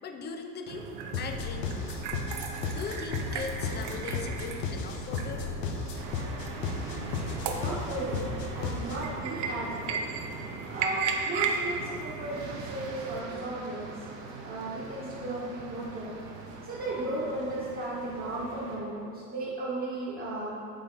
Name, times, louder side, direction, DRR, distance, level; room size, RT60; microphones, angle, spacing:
voice 1, 0.0-0.9 1.2-2.0 2.7-5.5, left 4 dB, 20° left, 5 dB, 0.5 m, -39 dB
sound 1, 0.7-13.2, right 5 dB, 55° right, 0.8 m, -36 dB
sound 2, 1.1-9.1, left 5 dB, 80° left, 0.8 m, -35 dB
sound 3, 5.9-18.8, right 3 dB, 85° right, 0.9 m, -43 dB
voice 2, 7.5-8.2 8.5-9.9 10.3-13.9 14.4-16.1 16.6-20.5, right 2 dB, 25° right, -8 dB, 1.4 m, -35 dB
8.2 x 3.9 x 3.4 m, 2.6 s
hypercardioid pair, 85°, 48 cm